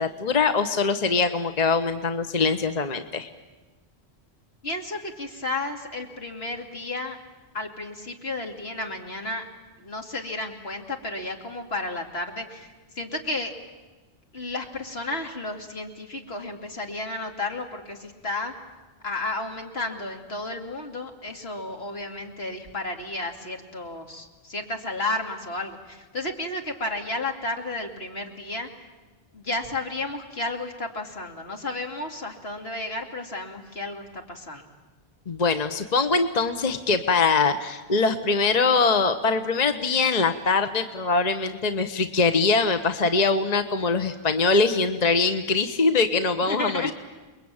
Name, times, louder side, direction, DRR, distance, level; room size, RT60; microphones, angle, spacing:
voice 1, 0.0-3.3 35.3-46.9, left 4 dB, 40° left, 8 dB, 1.2 m, -23 dB
voice 2, 4.6-7.2 7.5-9.4 9.8-12.7 12.9-13.5 14.3-18.5 19.0-28.7 29.3-34.7 46.5-46.9, left 2 dB, 75° left, 3 dB, 2.7 m, -32 dB
28.5 x 21.5 x 8.9 m, 1.2 s
omnidirectional pair, 1.1 m